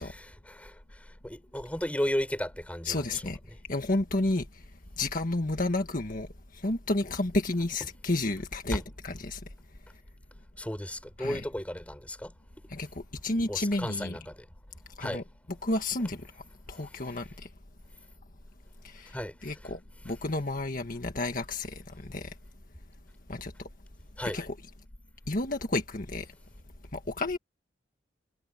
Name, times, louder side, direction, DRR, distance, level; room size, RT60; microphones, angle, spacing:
voice 1, 0.0-3.2 8.7-8.8 10.6-12.3 13.5-14.4 15.0-15.2 19.1-19.5 24.2-24.4, equal, 10° left, 4.7 m, -34 dB
voice 2, 2.8-3.4 3.7-4.6 5.0-6.3 6.5-9.4 11.2-11.4 12.7-14.2 15.0-15.2 15.6-16.3 16.7-17.5 18.8-19.2 19.4-19.8 20.0-22.3 23.3-23.5 24.3-24.5 25.3-26.3 26.9-27.4, left 2 dB, 50° left, 1.7 m, -31 dB
head